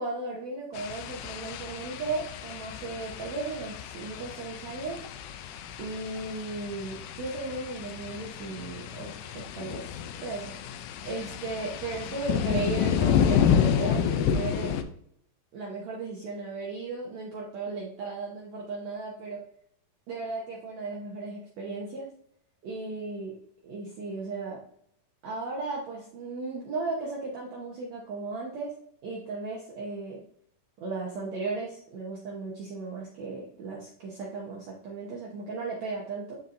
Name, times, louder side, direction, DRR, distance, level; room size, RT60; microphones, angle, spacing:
voice 1, 0.0-5.0 5.8-10.5 11.0-14.7 15.5-19.4 20.1-22.1 22.6-23.4 23.6-24.6 25.2-28.7 29.0-30.2 30.8-36.4, right 3 dB, 80° right, -3 dB, 1.5 m, -36 dB
sound 1, 0.7-14.8, left 8 dB, 80° left, 2.1 m, -30 dB
13.0 x 4.3 x 2.6 m, 0.68 s
omnidirectional pair, 4.7 m